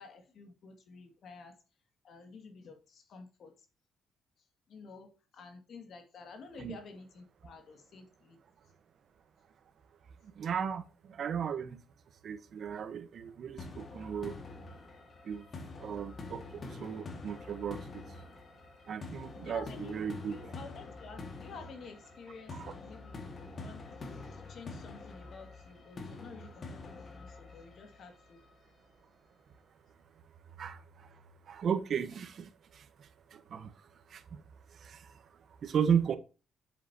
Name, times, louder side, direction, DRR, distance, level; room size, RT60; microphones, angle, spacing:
voice 1, 0.0-1.6 2.0-3.5 4.7-8.4 15.8-16.0 19.4-20.0 20.3-28.4, left 4 dB, 60° left, 2.3 m, -51 dB
voice 2, 10.2-11.8 12.2-14.4 15.2-15.5 15.8-18.0 18.9-20.4 22.5-22.7 30.6-31.2 31.5-34.4 34.7-36.2, right 7 dB, 60° right, 1.2 m, -36 dB
sound 1, 13.6-28.5, left 3 dB, 45° left, 2.1 m, -46 dB
7.9 x 7.7 x 2.9 m
cardioid pair, 90°, 0 cm